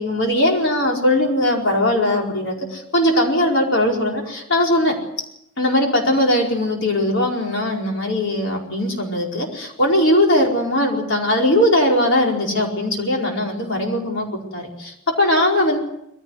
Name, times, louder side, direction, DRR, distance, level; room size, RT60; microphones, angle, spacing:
voice 1, 0.0-4.9 5.6-15.8, left 1 dB, 60° left, 0 dB, 4.9 m, -19 dB
21.5 x 16.5 x 9.6 m, 0.79 s
head